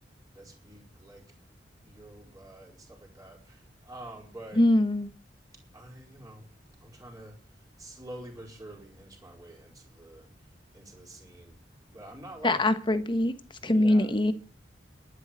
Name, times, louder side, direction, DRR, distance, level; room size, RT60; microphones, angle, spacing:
voice 1, 0.3-1.3 1.8-4.6 5.5-6.5 6.8-11.6 11.9-12.6 13.6-14.1, right 1 dB, 20° right, 4.5 m, -47 dB
voice 2, 4.6-5.1 12.4-13.3 13.6-14.3, left 1 dB, 25° left, 1.2 m, -23 dB
11.5 x 10.0 x 8.5 m
head